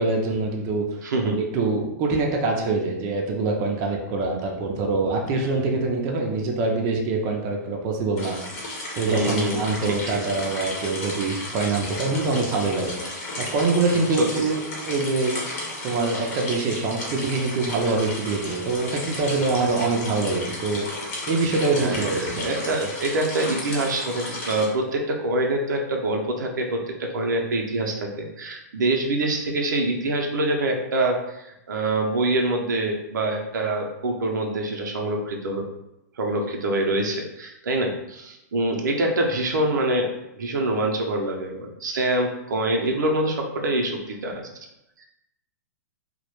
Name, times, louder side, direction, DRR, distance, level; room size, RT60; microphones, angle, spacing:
voice 1, 0.0-0.8 1.2-8.3 9.0-13.0 13.4-15.3 15.8-20.9 21.3-22.4, right 3 dB, 35° right, 1 dB, 0.4 m, -24 dB
voice 2, 1.0-1.4 9.1-10.2 21.8-35.7 36.2-44.5 45.0-45.1, right 2 dB, 90° right, 2 dB, 0.5 m, -25 dB
sound 1, 8.2-24.7, left 2 dB, 55° left, 0.8 m, -33 dB
2.2 x 2.0 x 2.9 m, 0.88 s
hypercardioid pair, 140°, 10 cm